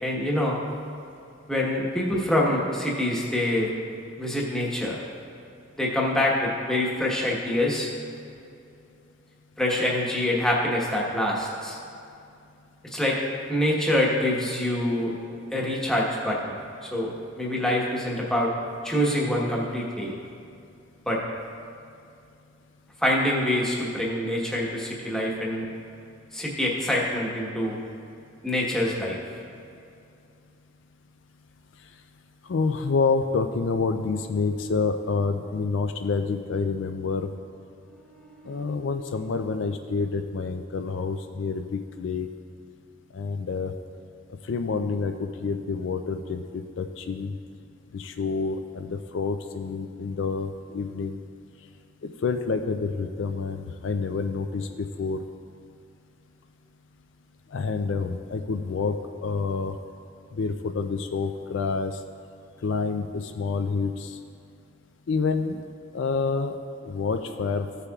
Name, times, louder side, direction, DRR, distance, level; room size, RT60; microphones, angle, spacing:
voice 1, 0.0-0.6 1.5-3.7 4.2-5.0 5.8-7.9 9.6-11.8 12.9-13.2 13.5-15.1 15.5-16.5 16.8-17.1 17.3-18.5 18.8-20.2 21.1-21.2 23.0-25.7 26.3-27.8 28.4-29.2 38.1-38.8, left 1 dB, 5° left, -4 dB, 1.1 m, -25 dB
voice 2, 32.4-37.3 38.4-42.3 43.1-43.7 44.4-47.3 47.9-51.2 52.0-55.2 57.5-59.8 60.3-62.0 62.6-64.2 65.1-65.6 65.9-66.6 66.8-67.7, left 4 dB, 65° left, 7 dB, 0.4 m, -28 dB
15.0 x 6.7 x 2.4 m, 2.6 s
head